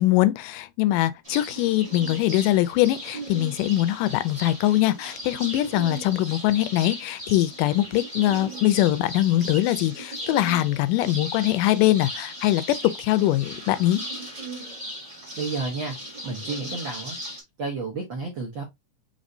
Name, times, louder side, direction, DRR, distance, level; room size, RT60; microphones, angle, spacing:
voice 1, 0.0-14.0, left 15 dB, 85° left, 2.1 m, -22 dB
sound 1, 1.2-17.4, right 1 dB, 25° right, 0.7 m, -37 dB
voice 2, 15.3-16.0 16.2-17.2 17.6-18.6, right 3 dB, 85° right, 1.0 m, -31 dB
5.3 x 3.2 x 2.6 m
omnidirectional pair, 3.7 m